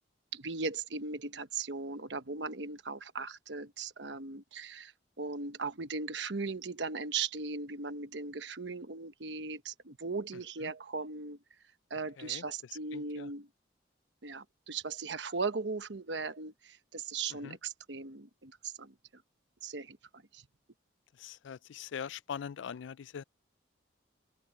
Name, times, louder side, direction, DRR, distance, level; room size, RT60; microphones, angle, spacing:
voice 1, 0.3-11.4 11.9-13.5 14.2-19.2 19.6-20.0 20.3-20.5, right 4 dB, 70° right, 1.1 m, -38 dB
voice 2, 12.9-13.3 17.4-17.6 21.2-23.2, left 7 dB, 80° left, 0.4 m, -42 dB
open air
head